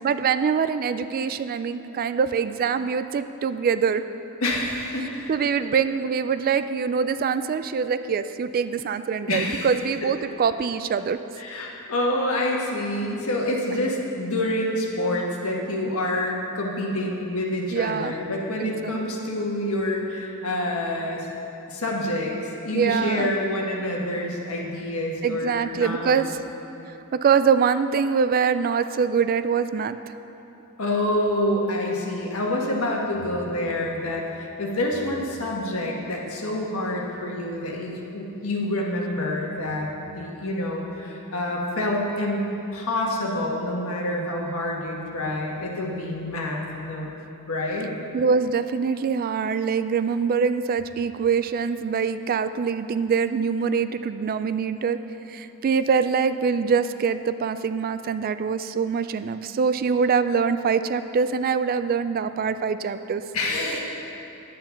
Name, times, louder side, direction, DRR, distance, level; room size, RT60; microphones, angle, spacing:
voice 1, 0.0-4.1 4.8-11.2 15.8-15.9 17.7-18.2 18.6-19.0 22.7-23.3 25.2-26.4 26.9-30.2 48.1-55.0 55.3-63.2 63.7-63.8, right 6 dB, 40° right, 12 dB, 0.3 m, -24 dB
voice 2, 4.4-5.3 9.3-9.7 10.0-10.1 11.4-21.3 21.7-26.3 30.8-39.9 40.1-42.4 42.7-47.1 47.5-47.9 63.3-63.8, left 1 dB, 65° left, -2 dB, 1.6 m, -27 dB
10.0 x 8.7 x 5.8 m, 3.0 s
head